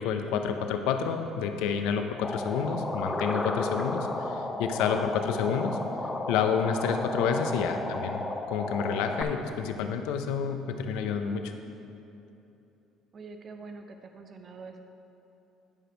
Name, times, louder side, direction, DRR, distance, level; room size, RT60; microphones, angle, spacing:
voice 1, 0.0-5.8 6.3-8.2 8.5-11.5, left 6 dB, 80° left, 6 dB, 0.6 m, -29 dB
sound 1, 2.2-9.2, left 2 dB, 15° left, 0.7 m, -33 dB
voice 2, 7.6-8.2 13.1-14.8, right 4 dB, 45° right, 5 dB, 0.6 m, -45 dB
10.5 x 5.0 x 4.4 m, 2.9 s
supercardioid pair, 70°, 0 cm